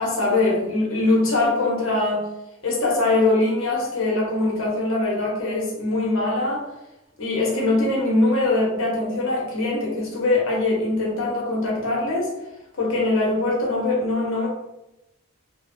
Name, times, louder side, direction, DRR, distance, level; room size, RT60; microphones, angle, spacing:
voice 1, 0.0-2.2 2.6-6.7 7.2-12.3 12.8-14.5, left 2 dB, 65° left, -4 dB, 1.0 m, -22 dB
3.2 x 2.1 x 2.7 m, 0.91 s
head